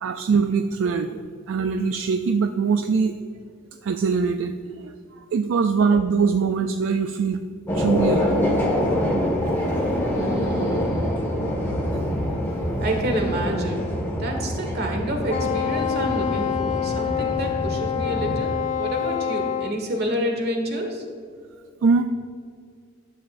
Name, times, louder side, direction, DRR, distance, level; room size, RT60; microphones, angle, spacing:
voice 1, 0.0-1.2 1.5-3.2 3.8-4.9 5.3-7.4 7.7-8.4 9.4-9.6 21.8-22.0, right 5 dB, 75° right, 7 dB, 0.4 m, -22 dB
sound 1, 7.7-18.4, equal, 10° left, 1.6 m, -25 dB
voice 2, 10.1-11.2 12.8-21.0, right 1 dB, 55° right, 3 dB, 1.5 m, -29 dB
Wind instrument woodwind instrument, 15.3-19.8, left 9 dB, 40° left, 0.4 m, -26 dB
12.0 x 7.7 x 2.5 m, 2.2 s
head